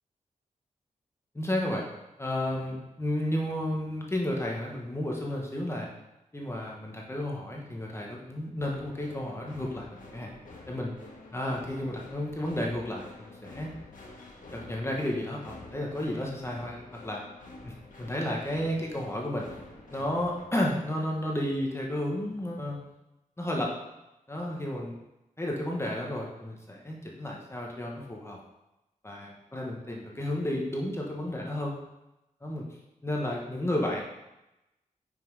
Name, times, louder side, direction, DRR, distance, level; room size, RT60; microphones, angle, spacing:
voice 1, 1.3-1.8 2.2-5.9 6.3-10.3 10.7-10.9 11.3-13.7 14.5-17.2 17.6-19.5 19.9-22.8 23.4-23.7 24.3-25.0 25.4-28.4 29.0-31.7 32.4-32.6 33.0-34.0, left 1 dB, 20° left, -2 dB, 1.2 m, -32 dB
sound 1, 8.6-20.4, left 2 dB, 75° left, 1.5 m, -48 dB
5.6 x 5.5 x 4.7 m, 0.95 s
wide cardioid pair, 100°, 14 cm